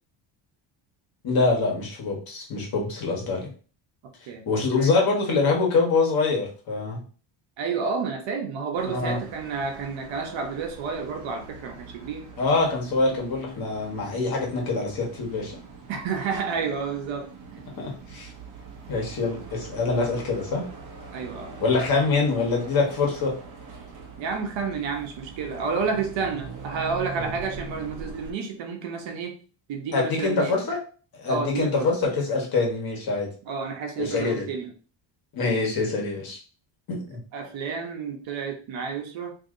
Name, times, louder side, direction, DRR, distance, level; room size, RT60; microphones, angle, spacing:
voice 1, 1.2-3.5 4.5-7.0 8.9-9.2 12.4-15.6 17.8-18.3 18.9-20.7 21.6-23.4 27.2-27.3 29.9-30.8 31.2-33.3 34.0-34.4 35.3-36.4 36.9-37.2, left 3 dB, 45° left, -1 dB, 1.3 m, -25 dB
voice 2, 7.6-12.3 15.9-17.6 21.1-21.6 24.2-29.4 29.7-30.6 31.3-31.9 33.5-34.7 37.3-39.3, right 5 dB, 65° right, 3 dB, 0.9 m, -30 dB
sound 1, 8.8-28.3, right 4 dB, 40° right, 0.7 m, -42 dB
2.8 x 2.7 x 3.7 m, 0.38 s
cardioid pair, 155°, 49 cm